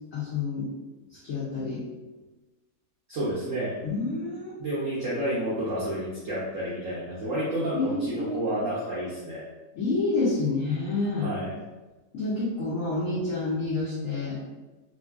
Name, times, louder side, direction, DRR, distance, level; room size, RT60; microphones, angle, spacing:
voice 1, 0.1-0.7 1.1-1.9 3.8-4.6 7.7-8.4 9.7-11.3 12.1-14.4, left 3 dB, 70° left, -7 dB, 0.7 m, -28 dB
voice 2, 3.1-3.7 4.6-9.4 11.2-11.5, right 1 dB, 65° right, -9 dB, 0.8 m, -30 dB
3.1 x 2.6 x 2.3 m, 1.2 s
omnidirectional pair, 2.1 m